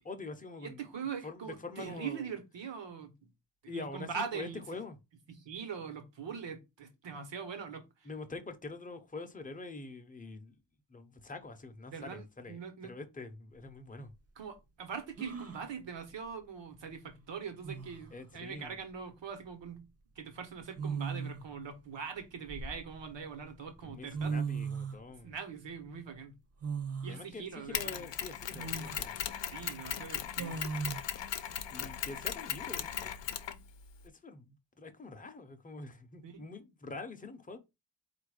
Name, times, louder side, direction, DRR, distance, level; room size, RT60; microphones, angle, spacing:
voice 1, 0.0-0.8 1.2-2.3 3.7-5.0 8.0-10.6 10.9-14.1 18.1-18.8 23.8-25.3 27.1-29.2 31.7-33.1 34.0-37.6, left 3 dB, 20° left, 0.6 m, -45 dB
voice 2, 0.6-3.3 3.6-4.6 5.3-8.1 11.9-12.9 14.4-19.9 20.2-24.4 25.2-26.3 27.0-28.1 29.5-30.6 36.2-36.4, right 6 dB, 75° right, 1.1 m, -42 dB
sound 1, 13.6-13.7 15.2-15.7 17.2-17.3 17.6-18.1 19.4-19.7 20.7-21.5 22.2-23.2 23.9-24.0 24.1-25.0 26.6-27.2 27.7-27.8 28.5-29.0 30.4-31.0, right 5 dB, 35° right, 0.6 m, -37 dB
Mechanisms, 27.7-34.1, left 9 dB, 70° left, 0.6 m, -38 dB
4.3 x 2.5 x 4.7 m
wide cardioid pair, 150°, 44 cm